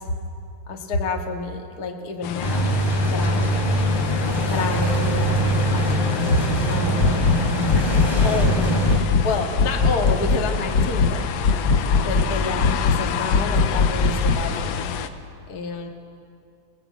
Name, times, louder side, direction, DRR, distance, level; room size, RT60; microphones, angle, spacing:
voice 1, 0.7-2.7 3.1-3.7 4.5-5.4 5.7-6.0 6.3-6.4 6.7-7.3 8.2-8.8 9.2-11.7 12.0-14.9 15.5-15.9, left 3 dB, 35° left, 1 dB, 1.9 m, -28 dB
sound 1, 2.2-15.1, left 8 dB, 65° left, 1.9 m, -30 dB
sound 2, 2.4-9.0, equal, 5° left, 3.7 m, -22 dB
sound 3, 7.0-7.4 7.7-8.6 8.9-9.3 9.6-10.4 10.7-11.1 11.4-12.3 12.6-13.0 13.3-14.4, left 4 dB, 90° left, 1.0 m, -20 dB
28.5 x 18.0 x 8.6 m, 2.4 s
omnidirectional pair, 3.6 m